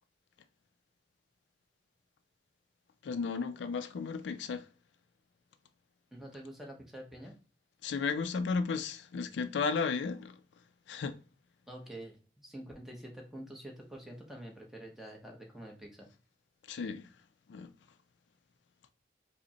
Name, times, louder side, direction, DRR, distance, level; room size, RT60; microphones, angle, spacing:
voice 1, 3.0-4.7 7.8-10.4 10.9-11.2 16.7-17.1 17.5-17.7, left 5 dB, 85° left, 0.4 m, -34 dB
voice 2, 6.1-7.3 11.7-16.1, right 1 dB, ahead, 0.8 m, -47 dB
4.9 x 2.1 x 2.8 m
head